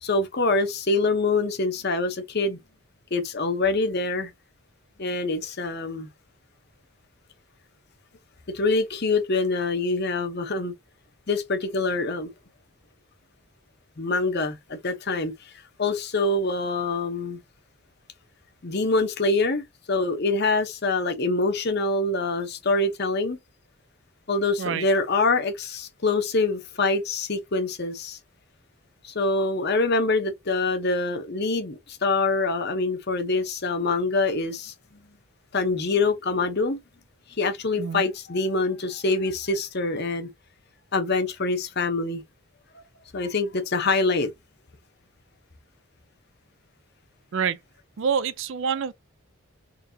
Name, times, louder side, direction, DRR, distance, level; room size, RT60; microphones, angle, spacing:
voice 1, 0.0-2.6 3.1-4.3 5.0-6.1 8.5-10.7 11.3-12.3 14.0-15.5 15.8-17.4 18.6-23.4 24.3-28.2 29.0-35.0 35.5-36.8 37.4-40.3 40.9-42.2 43.1-44.3, left 3 dB, 50° left, 0.8 m, -25 dB
voice 2, 48.0-48.9, right 6 dB, 55° right, 0.4 m, -26 dB
3.9 x 3.3 x 2.7 m
head